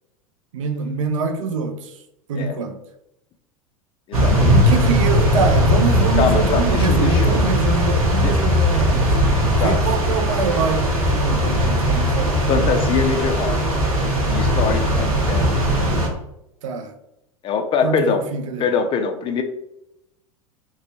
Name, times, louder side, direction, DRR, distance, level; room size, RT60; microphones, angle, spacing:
voice 1, 0.5-2.0 2.3-2.8 4.5-9.2 9.6-12.5 16.6-16.9 17.8-18.7, right 5 dB, 65° right, 0.4 m, -24 dB
voice 2, 4.1-4.8 6.2-7.4 8.2-8.4 9.6-9.8 12.5-13.6 14.3-15.7 17.4-18.2 18.6-19.4, left 6 dB, 30° left, 0.4 m, -23 dB
sound 1, 4.1-16.1, equal, 90° right, 0.8 m, -18 dB
3.1 x 2.2 x 2.8 m
figure-of-eight pair, 85°, 18 cm